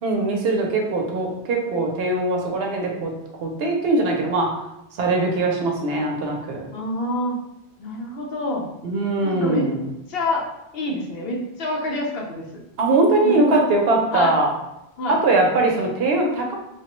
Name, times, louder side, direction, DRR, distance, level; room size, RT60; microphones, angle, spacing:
voice 1, 0.0-3.1 3.4-4.6 5.0-6.7 8.8-9.9 12.8-14.5 15.1-16.6, right 2 dB, 70° right, 1 dB, 0.8 m, -21 dB
voice 2, 6.7-7.4 7.8-8.7 9.2-9.7 10.1-10.5 10.7-12.5 13.2-13.7 14.1-14.4 15.0-15.2, left 1 dB, 70° left, -1 dB, 0.8 m, -26 dB
3.2 x 2.1 x 2.9 m, 0.89 s
omnidirectional pair, 1.1 m